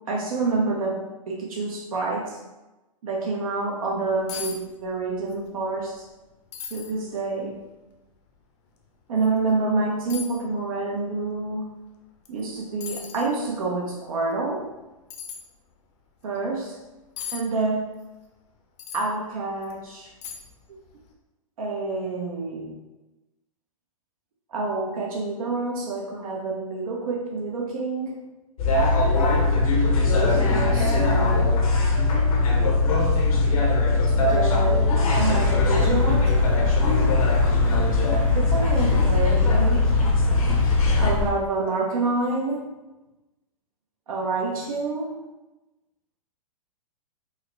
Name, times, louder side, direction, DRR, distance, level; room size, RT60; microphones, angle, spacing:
voice 1, 0.1-2.4 3.0-6.1 6.7-7.6 9.1-11.7 12.3-14.7 16.2-16.8 17.3-17.9 18.9-20.1 21.6-22.8 24.5-28.3 30.0-31.6 34.1-36.4 38.3-40.0 41.0-42.8 44.1-45.2, right 3 dB, 70° right, -2 dB, 0.7 m, -28 dB
sound 1, 3.9-4.0 4.3-4.6 4.9-5.4 5.8-5.9 6.5-6.9 7.6-7.7 9.2-9.3 10.1-10.4 12.2-12.4 12.8-13.3 15.1-15.4 17.2-17.4 18.8-19.1 19.6-19.7 20.2-20.6 20.9-21.0, left 8 dB, 50° left, 0.7 m, -36 dB
sound 2, 28.6-41.1, left 3 dB, 75° left, 0.9 m, -20 dB
sound 3, 35.2-41.3, left 4 dB, 10° left, 0.6 m, -29 dB
4.7 x 2.0 x 3.2 m, 1.0 s
hypercardioid pair, 125°, 18 cm